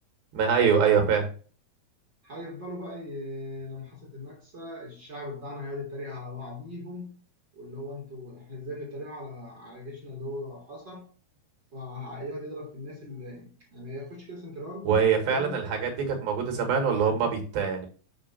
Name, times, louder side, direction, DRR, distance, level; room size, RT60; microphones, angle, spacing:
voice 1, 0.3-1.3 14.9-17.9, right 6 dB, 85° right, 3.6 m, -24 dB
voice 2, 2.2-7.2 7.5-11.1 11.7-14.9 15.2-15.6, left 1 dB, 35° right, 2.0 m, -39 dB
8.7 x 3.0 x 5.7 m
omnidirectional pair, 4.2 m